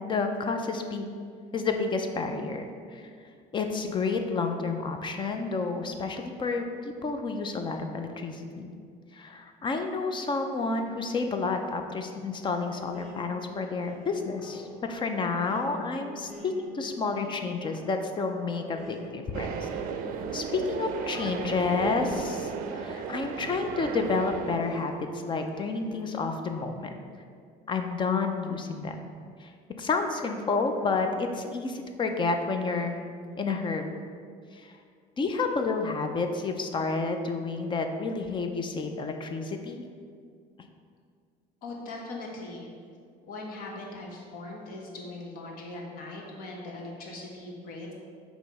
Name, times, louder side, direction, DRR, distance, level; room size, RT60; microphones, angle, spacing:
voice 1, 0.1-1.1 1.5-3.1 3.5-8.7 9.1-19.7 20.3-26.9 27.7-29.0 29.4-33.0 33.4-33.9 34.5-34.7 35.2-39.8, left 4 dB, 30° left, 5 dB, 0.5 m, -30 dB
sound 1, 12.9-24.0 24.6-26.1, equal, 5° right, 0.9 m, -46 dB
sound 2, 19.3-24.6, right 6 dB, 55° right, 0.5 m, -35 dB
voice 2, 41.6-42.7 43.3-47.9, left 2 dB, 60° left, -1 dB, 1.3 m, -40 dB
6.5 x 3.0 x 5.3 m, 2.1 s
cardioid pair, 125°, 17 cm